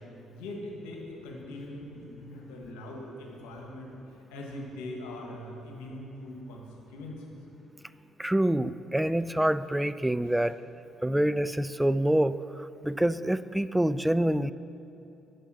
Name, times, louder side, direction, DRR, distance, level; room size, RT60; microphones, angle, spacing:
voice 1, 0.3-6.6 6.9-7.2 11.2-11.3, left 1 dB, 75° left, 0 dB, 1.4 m, -41 dB
voice 2, 8.2-10.6 11.0-14.5, right 1 dB, 10° right, 15 dB, 0.3 m, -26 dB
8.7 x 6.8 x 6.1 m, 2.9 s
hypercardioid pair, 50°, 0 cm